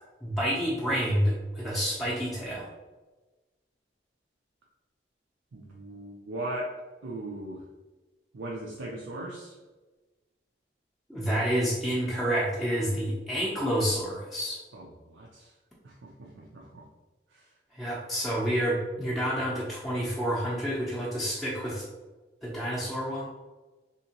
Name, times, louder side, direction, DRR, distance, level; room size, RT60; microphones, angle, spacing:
voice 1, 0.2-2.7 11.1-14.6 17.7-21.9 22.4-23.3, equal, ahead, -7 dB, 0.5 m, -29 dB
voice 2, 5.5-6.7 7.0-7.6 8.3-9.6 12.8-13.0 14.7-15.5 15.8-16.8 17.3-17.4, right 1 dB, 85° right, -3 dB, 0.5 m, -39 dB
3.4 x 2.8 x 2.8 m, 1.2 s
head